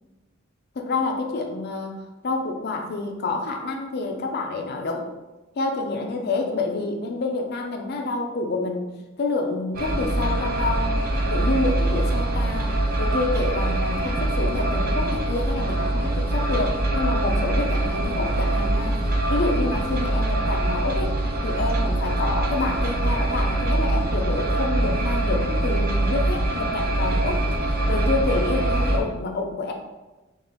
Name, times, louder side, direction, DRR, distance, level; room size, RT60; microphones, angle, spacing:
voice 1, 0.8-5.1 5.6-8.9 9.2-21.1 21.4-27.4 27.9-29.7, left 3 dB, 50° left, 3 dB, 0.4 m, -28 dB
sound 1, 9.7-29.0, right 1 dB, 45° right, 0.5 m, -23 dB
3.4 x 2.4 x 3.6 m, 1.1 s
head